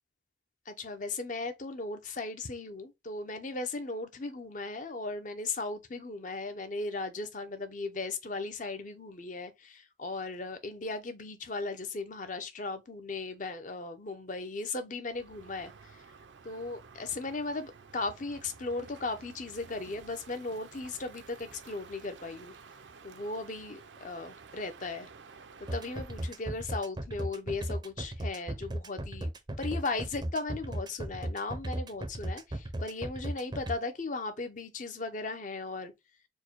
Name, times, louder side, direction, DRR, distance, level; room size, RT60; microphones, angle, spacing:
voice 1, 0.7-16.0 16.4-22.6 23.0-25.1 25.7-29.3 29.6-35.9, left 3 dB, 40° left, 0.7 m, -37 dB
Crow, 15.1-26.5, right 5 dB, 65° right, 0.5 m, -52 dB
sound 1, 25.7-33.7, right 1 dB, 20° right, 0.5 m, -35 dB
4.5 x 2.2 x 4.5 m
head